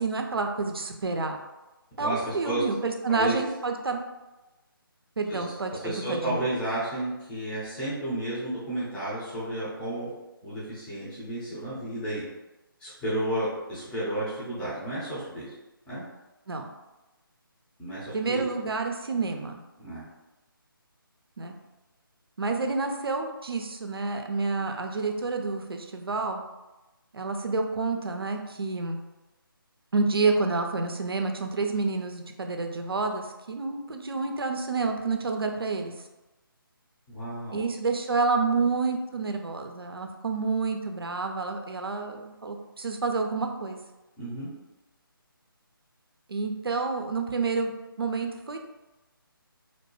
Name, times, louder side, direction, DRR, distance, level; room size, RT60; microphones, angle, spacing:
voice 1, 0.0-1.4 2.0-4.0 5.2-6.5 16.5-16.6 18.1-19.6 21.4-21.5 22.4-26.4 27.1-29.0 29.9-35.9 37.5-43.8 46.3-47.7 48.0-48.6, right 4 dB, 80° right, 4 dB, 0.4 m, -29 dB
voice 2, 2.0-2.6 3.1-3.4 5.3-5.4 5.8-10.1 10.4-12.2 12.8-15.5 15.9-16.0 17.8-18.5 19.8-20.0 37.1-37.6 44.2-44.5, right 1 dB, 5° left, -11 dB, 0.6 m, -32 dB
2.7 x 2.1 x 3.0 m, 1.0 s
figure-of-eight pair, 150°, 12 cm